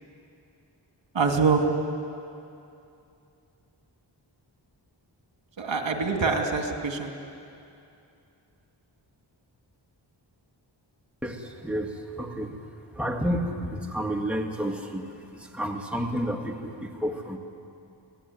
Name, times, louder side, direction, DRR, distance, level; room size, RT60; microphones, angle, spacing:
voice 1, 1.1-1.7 5.6-7.1, right 4 dB, 70° right, 3 dB, 2.5 m, -24 dB
voice 2, 11.2-12.6 12.9-17.4, equal, 5° right, 1 dB, 2.1 m, -31 dB
25.5 x 17.5 x 9.3 m, 2.6 s
wide cardioid pair, 90°, 46 cm